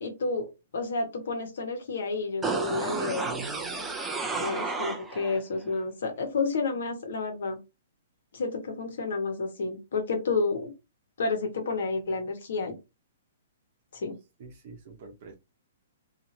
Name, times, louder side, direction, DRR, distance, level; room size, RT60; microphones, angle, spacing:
voice 1, 0.0-3.3 4.4-7.6 8.3-10.7 11.2-12.8 13.9-14.2, left 3 dB, 65° left, 4 dB, 1.1 m, -30 dB
sound 1, 2.4-5.4 5.7-5.8, right 4 dB, 5° right, 0.3 m, -32 dB
voice 2, 3.2-4.0 4.3-4.5 14.4-15.3, right 4 dB, 35° right, 4 dB, 0.8 m, -44 dB
2.8 x 2.5 x 2.6 m, 0.25 s
hypercardioid pair, 170°, 0 cm